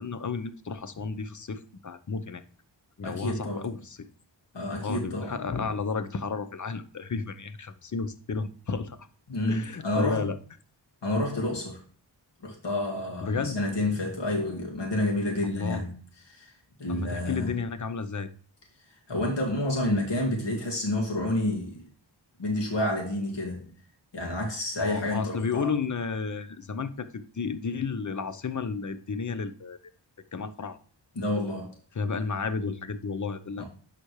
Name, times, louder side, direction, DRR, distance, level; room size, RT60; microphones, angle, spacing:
voice 1, 0.0-2.4 3.0-4.0 4.8-9.1 9.5-10.4 13.2-13.6 15.4-15.8 16.9-18.3 24.8-29.8 30.3-30.8 31.9-33.6, left 5 dB, 45° left, 0.8 m, -32 dB
voice 2, 3.0-3.7 4.5-5.4 9.3-10.3 11.0-11.8 12.4-15.9 16.3-16.5 16.8-17.5 19.1-21.8 22.4-23.7 24.1-25.7 31.2-31.7 33.6-33.7, left 1 dB, 75° left, 2.3 m, -29 dB
11.5 x 4.2 x 3.2 m
cardioid pair, 60°, 43 cm